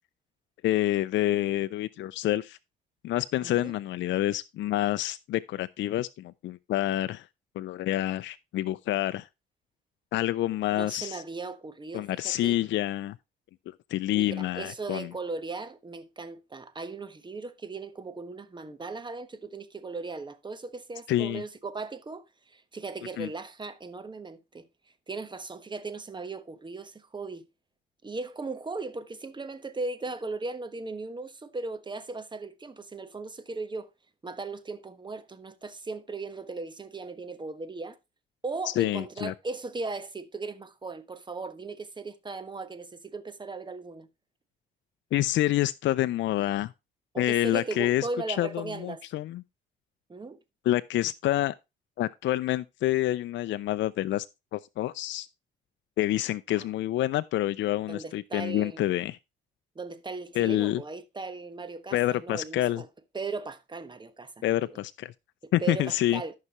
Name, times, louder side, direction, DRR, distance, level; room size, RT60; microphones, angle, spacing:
voice 1, 0.6-2.6 3.0-7.3 7.6-9.3 10.1-11.2 11.9-13.2 13.7-15.1 21.1-21.4 23.2-23.3 38.7-39.3 45.1-46.7 47.2-49.4 50.6-51.5 52.0-54.3 54.5-55.3 56.0-59.2 60.3-60.8 61.9-62.8 64.4-65.1 65.5-66.2, left 14 dB, 70° left, 0.4 m, -27 dB
voice 2, 3.4-3.7 10.7-12.6 14.1-24.7 25.1-27.4 28.0-33.9 34.2-38.0 38.4-44.1 47.1-49.0 50.1-50.4 56.5-56.7 57.9-58.9 59.7-62.9 63.1-64.6 65.4-66.3, right 3 dB, 25° right, 1.2 m, -37 dB
13.5 x 5.6 x 3.0 m
cardioid pair, 90°, 20 cm